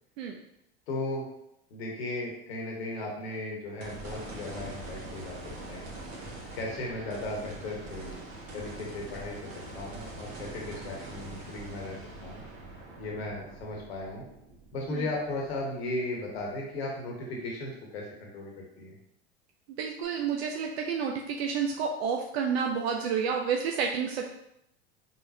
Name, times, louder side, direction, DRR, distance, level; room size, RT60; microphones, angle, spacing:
voice 1, 0.9-1.2 1.7-5.9 6.5-8.2 8.5-12.0 12.2-12.4 13.0-14.2 14.7-18.9, left 2 dB, 75° left, -1 dB, 1.1 m, -36 dB
sound 1, 3.8-16.1 16.6-16.7 20.0-20.1, right 2 dB, 45° right, 1.3 m, -43 dB
voice 2, 19.7-24.3, right 6 dB, 75° right, 2 dB, 0.5 m, -30 dB
4.2 x 3.7 x 2.7 m, 0.79 s
hypercardioid pair, 75°, 32 cm